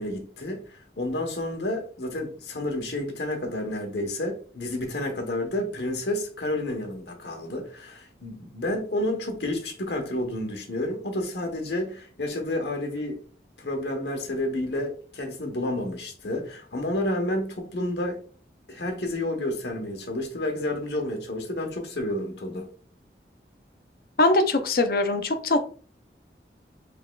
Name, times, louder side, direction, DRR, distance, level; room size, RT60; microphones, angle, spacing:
voice 1, 0.0-13.2 13.6-18.2 18.7-22.7, left 1 dB, 75° left, 1.1 m, -30 dB
voice 2, 24.2-25.6, left 2 dB, 55° left, 0.5 m, -22 dB
5.2 x 3.5 x 2.3 m
head